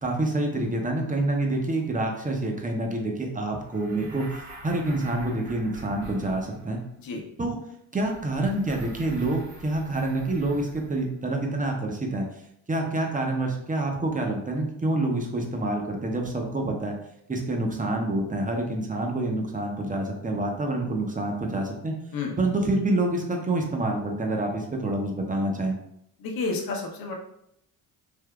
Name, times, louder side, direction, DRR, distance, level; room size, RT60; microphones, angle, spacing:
voice 1, 0.0-4.3 4.6-6.8 7.4-7.6 7.9-12.2 12.7-17.0 17.3-21.9 22.4-25.7, right 2 dB, 15° right, 2 dB, 0.7 m, -27 dB
sound 1, 3.6-6.9 7.9-11.1, right 1 dB, 85° right, 1.4 m, -45 dB
voice 2, 26.2-27.1, left 3 dB, 50° left, 1 dB, 0.9 m, -30 dB
3.5 x 2.7 x 2.3 m, 0.77 s
supercardioid pair, 60°, 46 cm